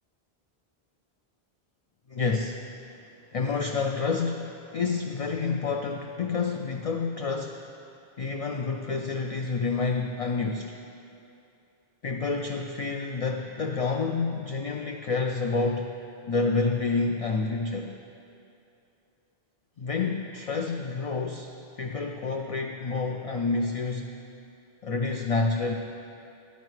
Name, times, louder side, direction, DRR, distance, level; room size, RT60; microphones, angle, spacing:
voice 1, 2.1-2.7 3.3-7.6 8.2-10.8 12.0-15.9 16.3-17.9 19.8-24.2 24.8-25.7, left 4 dB, 50° left, 3 dB, 0.4 m, -29 dB
12.5 x 9.3 x 3.2 m, 2.7 s
omnidirectional pair, 1.1 m